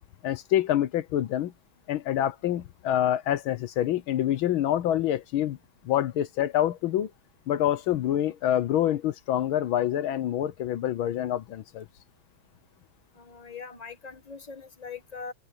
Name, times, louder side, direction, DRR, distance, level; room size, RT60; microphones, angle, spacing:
voice 1, 0.2-1.5 1.9-5.6 5.8-7.1 7.5-11.9, left 11 dB, 80° left, 1.7 m, -26 dB
voice 2, 13.1-15.3, left 5 dB, 25° left, 0.9 m, -41 dB
omnidirectional pair, 2.2 m